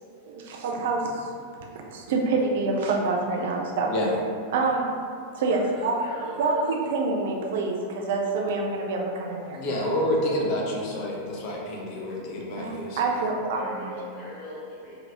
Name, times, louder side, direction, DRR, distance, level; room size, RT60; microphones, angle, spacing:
voice 1, 0.3-1.3 1.9-3.9 4.5-4.9 5.4-5.9 6.4-9.6 12.6-13.9, right 3 dB, 55° right, 0 dB, 0.3 m, -26 dB
voice 2, 5.3-6.8 13.5-15.0, equal, 25° left, -10 dB, 1.4 m, -40 dB
voice 3, 9.5-13.0, left 1 dB, 45° left, -2 dB, 0.6 m, -28 dB
2.9 x 2.5 x 2.9 m, 2.3 s
figure-of-eight pair, 90°, 0 cm